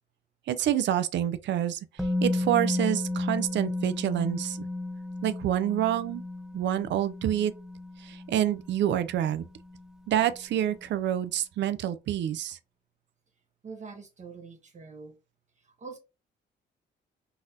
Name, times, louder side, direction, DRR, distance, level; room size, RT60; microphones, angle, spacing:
voice 1, 0.5-1.8 2.2-4.6 5.2-6.2 6.5-7.5 8.0-9.5 10.1-12.6, right 11 dB, 65° right, 0.5 m, -27 dB
Musical instrument, 2.0-9.9 10.2-10.3, left 2 dB, 5° right, 0.4 m, -33 dB
voice 2, 13.6-15.2 15.6-16.0, right 4 dB, 35° right, 0.8 m, -44 dB
3.9 x 2.5 x 2.6 m
cardioid pair, 90°, 20 cm